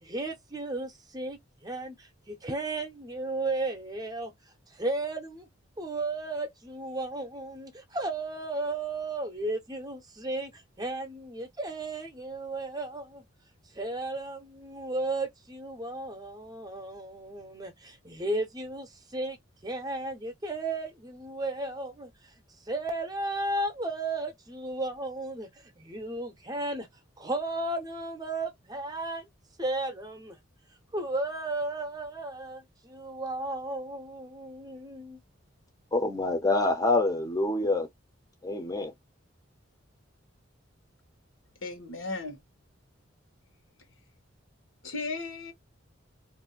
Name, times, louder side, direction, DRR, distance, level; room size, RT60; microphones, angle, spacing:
voice 1, 0.0-4.3 4.7-5.5 5.8-13.2 13.7-22.1 22.7-25.5 25.8-26.9 27.2-29.3 29.6-30.4 30.9-35.2, right 2 dB, 20° right, 0.7 m, -34 dB
voice 2, 35.9-37.9 38.4-38.9, left 2 dB, 20° left, 0.6 m, -26 dB
voice 3, 41.6-42.4 44.8-45.5, left 3 dB, 75° left, 1.1 m, -35 dB
2.6 x 2.1 x 3.7 m
head